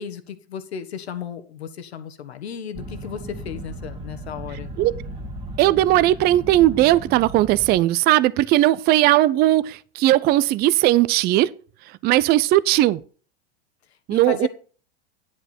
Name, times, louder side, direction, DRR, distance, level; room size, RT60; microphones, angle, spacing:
voice 1, 0.0-4.7 14.1-14.5, left 8 dB, 85° left, 1.3 m, -34 dB
sound 1, 2.7-7.8, right 1 dB, 15° right, 1.7 m, -36 dB
voice 2, 5.6-11.5 12.0-13.0 14.1-14.5, right 15 dB, 30° right, 0.4 m, -18 dB
10.0 x 7.8 x 4.4 m
hypercardioid pair, 100°, 31 cm